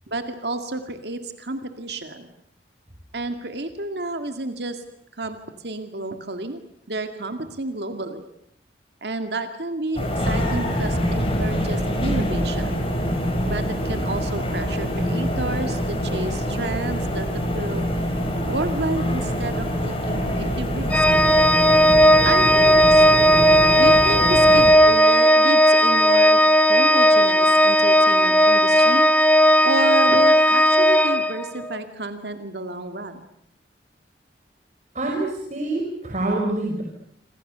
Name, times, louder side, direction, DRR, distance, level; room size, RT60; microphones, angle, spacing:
voice 1, 0.1-2.3 3.1-4.8 5.2-5.4 5.6-6.6 6.9-8.2 9.0-12.7 13.5-17.3 17.5-17.9 18.4-21.0 22.2-23.1 23.7-26.4 26.7-29.1 29.6-33.2, right 2 dB, 70° right, 7 dB, 2.2 m, -30 dB
sound 1, 10.0-24.7, equal, 30° left, 7.2 m, -25 dB
Organ, 20.9-31.8, equal, 10° left, 1.6 m, -15 dB
voice 2, 34.9-36.8, right 2 dB, 40° right, -1 dB, 5.6 m, -26 dB
28.0 x 27.0 x 6.9 m, 0.73 s
head